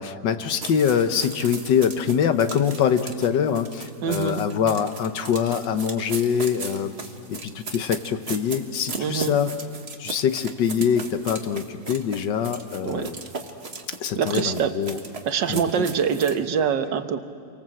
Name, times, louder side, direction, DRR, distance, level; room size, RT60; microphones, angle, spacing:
voice 1, 0.0-6.9 7.3-9.5 10.0-13.2 14.0-15.0 15.5-15.9, left 7 dB, 80° left, 9 dB, 1.7 m, -24 dB
sound 1, 0.6-16.4, right 4 dB, 35° right, 1.7 m, -37 dB
voice 2, 4.0-4.5 9.0-9.3 12.8-13.1 14.2-14.7 15.3-17.2, right 7 dB, 80° right, 9 dB, 1.8 m, -24 dB
29.0 x 24.0 x 7.7 m, 2.2 s
omnidirectional pair, 1.9 m